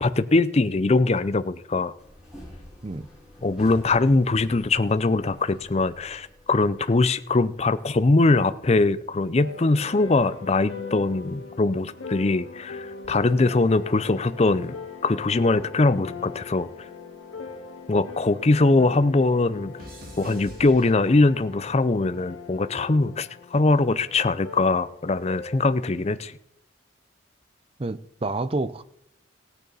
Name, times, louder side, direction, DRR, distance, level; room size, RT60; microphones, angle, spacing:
voice 1, 0.0-1.9 3.4-14.8 15.0-16.7 17.9-19.7 20.2-26.3, left 3 dB, 30° left, 0.5 m, -22 dB
sound 1, 2.0-7.7, equal, 5° right, 4.5 m, -47 dB
sound 2, 9.4-25.9, left 5 dB, 90° left, 1.6 m, -41 dB
sound 3, 13.0-15.5 15.8-18.5 18.7-21.5 22.3-22.7, right 1 dB, 45° right, 2.1 m, -48 dB
voice 2, 27.8-28.8, right 2 dB, 30° right, 0.5 m, -29 dB
16.0 x 9.2 x 4.1 m
head